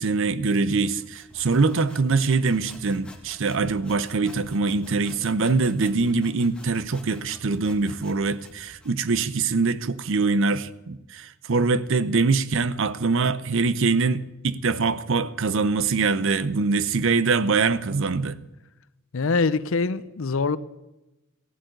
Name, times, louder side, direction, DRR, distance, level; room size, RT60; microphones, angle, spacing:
voice 1, 0.0-18.4, right 4 dB, 60° right, 0.7 m, -23 dB
sound 1, 0.8-9.4, left 1 dB, 5° left, 1.7 m, -49 dB
voice 2, 19.1-20.6, left 4 dB, 65° left, 0.6 m, -24 dB
15.0 x 7.8 x 9.4 m
head